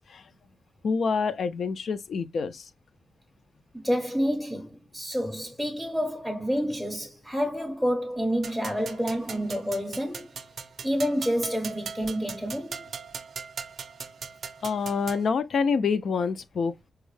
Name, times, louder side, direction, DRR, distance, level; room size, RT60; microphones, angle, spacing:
voice 1, 0.8-2.6 14.6-16.7, left 5 dB, 65° left, 0.4 m, -27 dB
voice 2, 3.7-10.3 10.8-12.9, equal, 10° left, 0.6 m, -28 dB
sound 1, 8.4-15.3, right 6 dB, 65° right, 0.4 m, -40 dB
4.6 x 2.0 x 3.1 m
wide cardioid pair, 145°, 0 cm